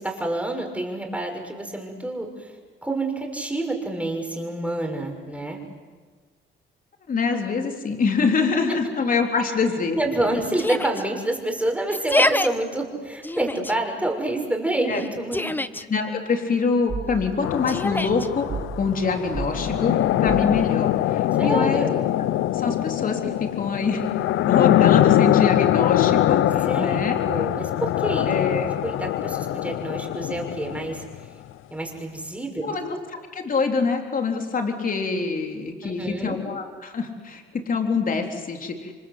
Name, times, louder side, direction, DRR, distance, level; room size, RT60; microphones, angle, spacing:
voice 1, 0.0-2.5 2.8-5.6 9.9-15.6 21.3-22.1 26.7-27.0 27.2-28.3 28.8-31.0 31.7-33.0 35.8-36.4, right 1 dB, 5° right, 2 dB, 6.3 m, -28 dB
voice 2, 7.1-10.1 14.9-15.0 15.8-18.5 18.8-19.9 20.2-21.9 22.5-24.1 24.5-27.2 28.3-28.7 32.6-33.0 33.3-38.9, left 4 dB, 45° left, 4 dB, 3.9 m, -25 dB
Yell, 10.6-11.0 11.9-12.5 13.2-13.7 14.9-15.8 17.7-18.3, left 1 dB, 10° left, 1.0 m, -25 dB
sound 1, 16.9-17.2 18.5-18.8 19.3-19.6 20.2-20.6, right 5 dB, 35° right, 3.4 m, -31 dB
sound 2, 17.4-31.3, left 13 dB, 85° left, 0.7 m, -22 dB
29.0 x 25.0 x 8.2 m, 1.5 s
cardioid pair, 90°, 20 cm